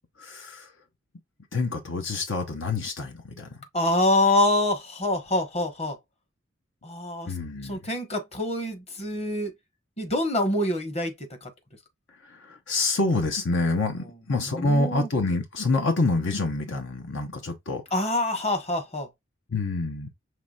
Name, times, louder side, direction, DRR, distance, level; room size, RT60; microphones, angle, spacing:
voice 1, 0.2-0.7 1.5-3.5 7.3-7.8 12.7-17.8 19.5-20.1, left 2 dB, 65° left, 0.9 m, -27 dB
voice 2, 3.7-6.0 6.8-7.3 7.6-9.5 10.0-11.1 11.4-11.5 14.4-15.1 17.9-19.1, left 1 dB, 35° left, 1.3 m, -25 dB
5.9 x 3.2 x 2.4 m
head